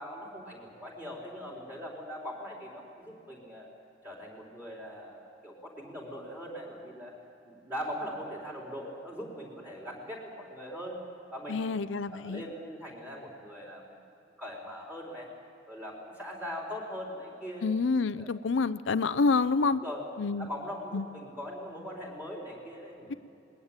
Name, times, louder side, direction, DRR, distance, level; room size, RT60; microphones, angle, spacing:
voice 1, 0.0-3.7 4.0-7.1 7.4-11.0 11.3-11.6 12.1-14.0 14.4-15.3 15.7-17.7 18.1-18.3 19.7-20.0 20.4-23.2, equal, 10° right, -2 dB, 4.1 m, -41 dB
voice 2, 11.5-12.4 17.6-19.8 20.2-20.5 20.9-21.0, left 4 dB, 70° left, 14 dB, 0.5 m, -27 dB
20.5 x 19.5 x 8.9 m, 2.7 s
head